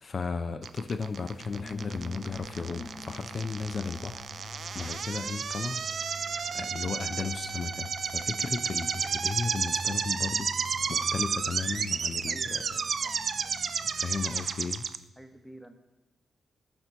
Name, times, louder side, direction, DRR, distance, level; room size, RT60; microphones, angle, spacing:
voice 1, 0.0-4.3 4.7-5.8 6.5-10.5 10.9-12.6 13.9-14.9, left 4 dB, 50° left, 9 dB, 0.4 m, -35 dB
sound 1, 0.6-15.0, right 6 dB, 55° right, 0.3 m, -32 dB
sound 2, 1.4-14.5, left 2 dB, 30° left, 0.8 m, -46 dB
voice 2, 12.3-13.7 15.2-15.7, right 1 dB, ahead, 6 dB, 0.9 m, -50 dB
13.0 x 4.5 x 3.9 m, 1.1 s
cardioid pair, 70°, 0 cm